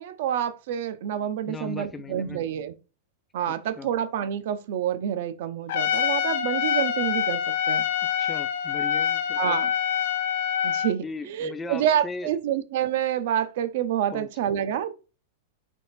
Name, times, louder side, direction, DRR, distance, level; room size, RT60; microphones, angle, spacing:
voice 1, 0.0-2.7 3.3-7.8 9.4-9.7 10.6-14.9, right 10 dB, 65° right, 0.5 m, -28 dB
voice 2, 1.5-2.4 3.5-3.9 8.2-9.6 11.0-12.3 14.1-14.3, left 3 dB, 15° left, 0.4 m, -38 dB
Trumpet, 5.7-10.9, left 9 dB, 70° left, 0.6 m, -25 dB
3.5 x 2.4 x 4.1 m
supercardioid pair, 145°, 0 cm